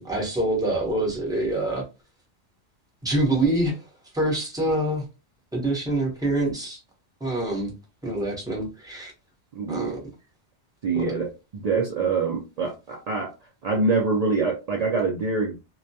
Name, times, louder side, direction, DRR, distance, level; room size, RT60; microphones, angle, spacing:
voice 1, 0.0-1.8 3.0-3.8 4.1-5.1 5.5-6.8 7.2-7.7 8.0-9.1 9.7-10.0 10.9-11.2, right 1 dB, 5° right, 0.6 m, -25 dB
voice 2, 9.6-10.0 10.8-11.3 11.5-13.3 13.6-15.6, right 4 dB, 65° right, 0.4 m, -25 dB
2.2 x 2.2 x 2.6 m
omnidirectional pair, 1.2 m